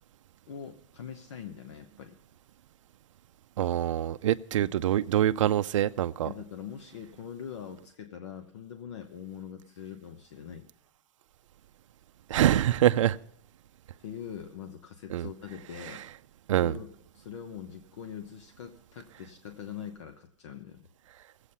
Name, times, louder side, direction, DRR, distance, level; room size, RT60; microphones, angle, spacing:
voice 1, 0.5-2.1 4.5-4.7 6.2-10.7 14.0-16.0 16.6-20.9, left 8 dB, 65° left, 1.0 m, -43 dB
voice 2, 3.6-6.3 12.3-13.2 15.1-15.3 15.8-16.0 16.5-16.8, right 12 dB, 75° right, 0.5 m, -25 dB
18.5 x 8.2 x 5.6 m
supercardioid pair, 170°, 16 cm